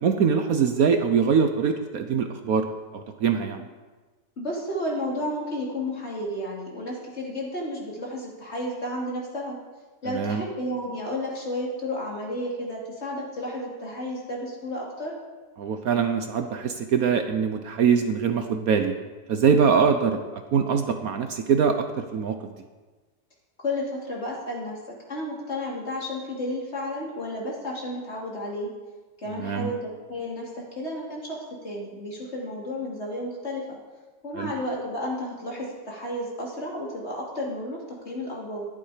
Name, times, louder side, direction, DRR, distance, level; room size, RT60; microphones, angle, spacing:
voice 1, 0.0-2.7 2.9-3.6 10.1-10.4 15.6-18.9 19.3-22.5 29.3-29.7 34.3-34.5, right 6 dB, 65° right, 7 dB, 1.2 m, -23 dB
voice 2, 4.4-9.6 10.0-15.1 23.6-24.8 25.1-28.7 29.2-33.8 34.2-38.6, left 1 dB, 40° left, -3 dB, 3.0 m, -32 dB
12.5 x 11.0 x 5.0 m, 1.3 s
omnidirectional pair, 1.8 m